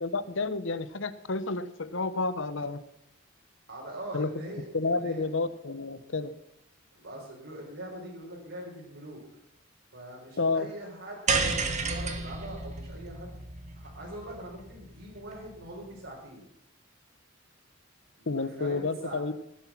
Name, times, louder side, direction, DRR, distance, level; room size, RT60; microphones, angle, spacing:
voice 1, 0.0-2.8 4.1-4.3 4.7-6.3 10.4-10.7 18.3-19.3, left 3 dB, 65° left, 14 dB, 1.0 m, -30 dB
voice 2, 3.7-4.6 4.9-5.3 6.9-9.2 9.9-13.3 13.8-16.5 18.2-19.3, right 1 dB, 70° right, -5 dB, 4.5 m, -42 dB
sound 1, 11.3-15.7, right 4 dB, 35° right, 1.6 m, -32 dB
17.0 x 10.0 x 5.9 m, 0.78 s
head